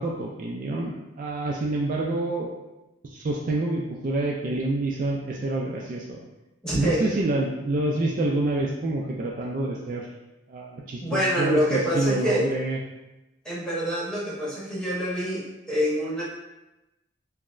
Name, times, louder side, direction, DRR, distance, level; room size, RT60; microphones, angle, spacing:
voice 1, 0.0-2.5 3.0-6.2 6.7-10.1 10.5-12.8, right 2 dB, 45° right, -1 dB, 0.3 m, -27 dB
voice 2, 6.6-7.0 11.0-12.5 13.4-16.2, equal, 5° left, -8 dB, 1.0 m, -26 dB
5.7 x 2.0 x 2.4 m, 0.99 s
head